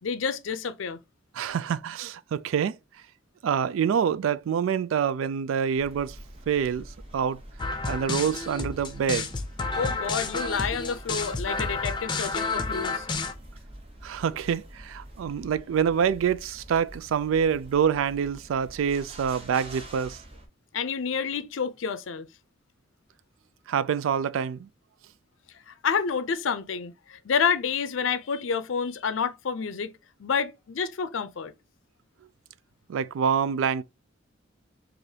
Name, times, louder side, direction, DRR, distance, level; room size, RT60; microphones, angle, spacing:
voice 1, 0.0-1.0 9.8-13.1 20.7-22.3 25.7-29.9 30.2-31.5, left 6 dB, 75° left, 0.5 m, -29 dB
voice 2, 1.3-2.8 3.4-6.2 6.5-6.9 7.1-7.4 7.7-9.3 14.0-20.2 23.7-24.7 32.9-33.8, right 7 dB, 90° right, 0.3 m, -26 dB
sound 1, 5.7-20.5, right 1 dB, 30° right, 0.9 m, -46 dB
sound 2, 7.6-13.3, left 3 dB, 25° left, 0.6 m, -30 dB
4.7 x 2.5 x 2.7 m
head